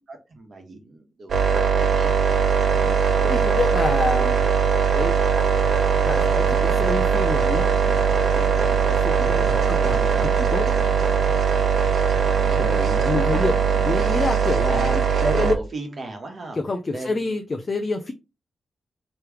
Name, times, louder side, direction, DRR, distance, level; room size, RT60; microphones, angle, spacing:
voice 1, 0.1-2.1 12.5-12.7 13.1-13.5 14.7-16.6 16.9-17.4, right 2 dB, 45° right, 1.3 m, -35 dB
sound 1, 1.3-15.5, right 6 dB, 65° right, 0.6 m, -20 dB
voice 2, 2.7-4.4 4.9-5.6 6.0-10.7 12.6-13.5 13.9-15.0 15.3-15.6 16.6-18.1, left 3 dB, 30° left, 0.5 m, -28 dB
3.3 x 3.0 x 4.7 m
wide cardioid pair, 165°, 0 cm